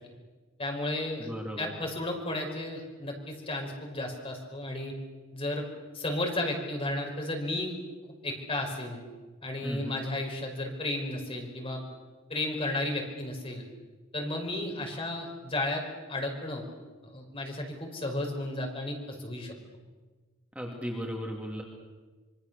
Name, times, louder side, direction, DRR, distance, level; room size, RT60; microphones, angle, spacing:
voice 1, 0.6-1.3 1.6-4.9 5.3-5.6 5.9-7.7 8.2-9.0 9.4-11.8 12.3-13.6 14.1-15.8 16.1-16.6 17.0-19.5, left 1 dB, 30° left, 2 dB, 5.1 m, -33 dB
voice 2, 1.2-1.7 9.6-10.0 20.5-21.6, equal, 5° right, 0 dB, 2.7 m, -36 dB
26.5 x 23.5 x 6.9 m, 1.3 s
head